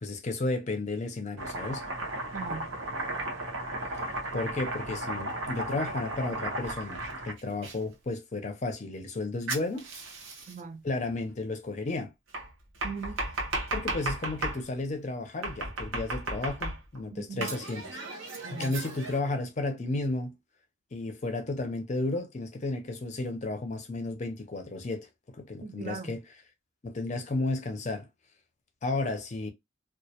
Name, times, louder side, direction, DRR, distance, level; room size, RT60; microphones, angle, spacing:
voice 1, 0.0-1.9 4.3-9.9 10.8-12.1 13.7-18.0 18.5-20.3 20.9-26.2 26.8-28.1 28.8-29.5, left 2 dB, 35° left, 0.5 m, -33 dB
Domestic sounds home sounds, 1.4-7.8 9.5-10.6 12.3-14.6 15.4-17.0 17.4-19.2, right 2 dB, 75° right, 0.7 m, -35 dB
voice 2, 2.3-2.7 10.5-10.8 12.8-13.2 17.1-17.5 18.4-18.7 25.6-26.1, right 5 dB, 35° right, 0.4 m, -39 dB
2.2 x 2.0 x 2.8 m
head